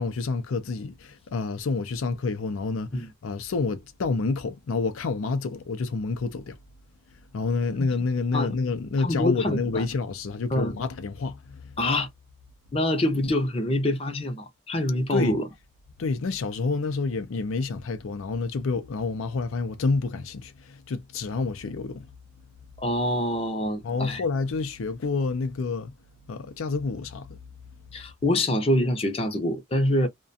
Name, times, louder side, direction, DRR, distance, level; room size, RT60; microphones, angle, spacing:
voice 1, 0.0-6.6 7.3-11.7 15.1-15.4 16.0-22.1 23.8-25.9 26.3-27.4, left 4 dB, 85° left, 0.5 m, -28 dB
voice 2, 9.0-9.9 10.5-10.8 11.8-12.1 12.7-15.4 22.8-24.2 27.9-30.1, left 1 dB, 30° left, 0.6 m, -25 dB
2.3 x 2.2 x 2.5 m
head